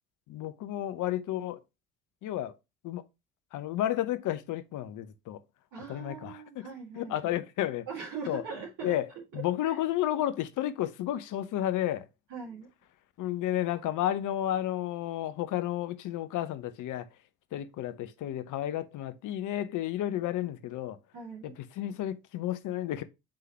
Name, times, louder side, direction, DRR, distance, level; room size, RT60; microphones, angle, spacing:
voice 1, 0.3-1.6 2.2-2.6 2.8-3.0 3.5-5.4 5.9-6.6 6.9-7.9 8.3-8.4 8.8-9.1 9.3-12.1 13.2-17.1 17.5-21.0 21.4-23.0, left 12 dB, 55° left, 0.8 m, -32 dB
voice 2, 5.7-7.3 7.9-9.0 9.3-9.8 12.3-12.7 21.1-21.5, right 6 dB, 60° right, 2.4 m, -41 dB
8.6 x 3.8 x 2.9 m
hypercardioid pair, 50°, 36 cm